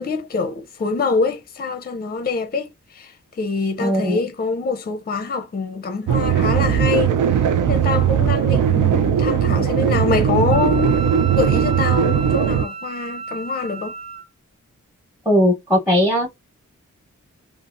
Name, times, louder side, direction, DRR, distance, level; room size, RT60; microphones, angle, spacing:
voice 1, 0.0-11.0 11.4-13.9, left 4 dB, 30° left, 0.5 m, -25 dB
voice 2, 3.8-4.2 15.3-16.3, left 1 dB, 5° right, 0.9 m, -18 dB
sound 1, 6.1-12.6, right 8 dB, 80° right, 0.5 m, -18 dB
Wind instrument woodwind instrument, 10.5-14.2, right 5 dB, 60° right, 1.1 m, -32 dB
2.7 x 2.4 x 2.5 m
wide cardioid pair, 85°, 31 cm